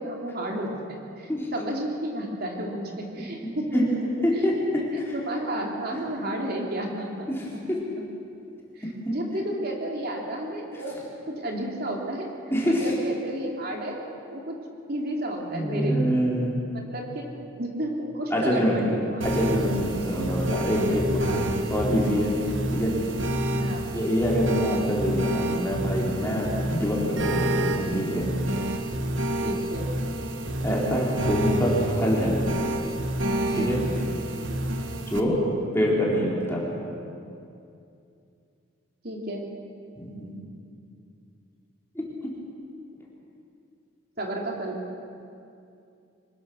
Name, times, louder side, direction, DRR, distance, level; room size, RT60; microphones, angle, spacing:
voice 1, 0.0-4.8 5.1-7.6 8.7-11.0 11.3-12.3 12.7-14.0 14.3-14.6 14.9-16.2 16.7-19.4 21.1-21.4 23.5-24.0 29.4-29.9 33.5-34.0 39.0-39.4 44.2-44.8, right 1 dB, 50° right, 0 dB, 3.2 m, -32 dB
voice 2, 4.2-4.5 7.3-7.4 7.7-7.8 9.0-9.1 12.5-12.9 15.5-16.5 18.3-18.8 19.2-22.4 22.7-22.9 23.9-28.3 30.6-32.4 33.5-33.8 35.1-35.4 35.7-36.6 40.0-40.3 41.9-42.1, equal, 10° left, -4 dB, 4.1 m, -25 dB
sound 1, 19.2-35.2, right 1 dB, 75° right, 1.6 m, -28 dB
25.0 x 20.0 x 6.4 m, 2.6 s
head